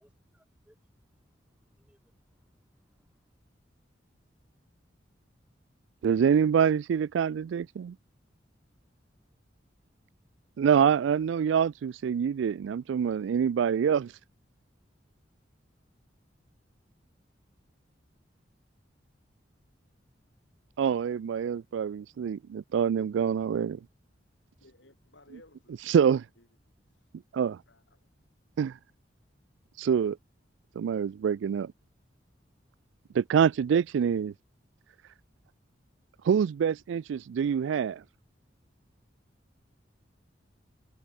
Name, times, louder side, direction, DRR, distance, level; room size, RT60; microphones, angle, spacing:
voice 1, 0.0-3.3, equal, 5° right, 3.1 m, -70 dB
voice 2, 6.0-8.0 10.6-14.1 20.8-23.8 25.9-26.2 27.3-27.6 28.6-28.8 29.8-30.2 30.8-31.7 33.1-34.3 36.2-38.0, right 7 dB, 80° right, 0.3 m, -26 dB
voice 3, 24.6-26.1 26.4-26.5 26.8-28.1, left 2 dB, 75° left, 4.8 m, -60 dB
head